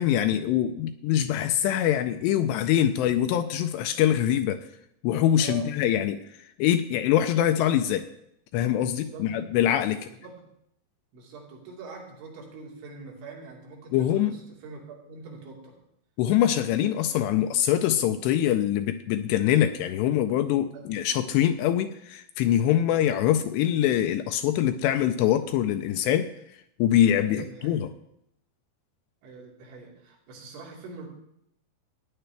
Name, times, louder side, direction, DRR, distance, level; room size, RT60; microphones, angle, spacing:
voice 1, 0.0-4.6 5.0-8.1 8.5-10.1 13.9-14.4 16.2-26.3 26.8-27.9, left 11 dB, 80° left, 8 dB, 2.6 m, -24 dB
voice 2, 5.4-5.7 8.9-9.5 10.2-10.4 11.1-15.8 20.7-21.3 27.3-27.8 29.2-31.1, right 4 dB, 85° right, -2 dB, 4.9 m, -44 dB
15.5 x 10.0 x 3.4 m, 0.76 s
omnidirectional pair, 5.3 m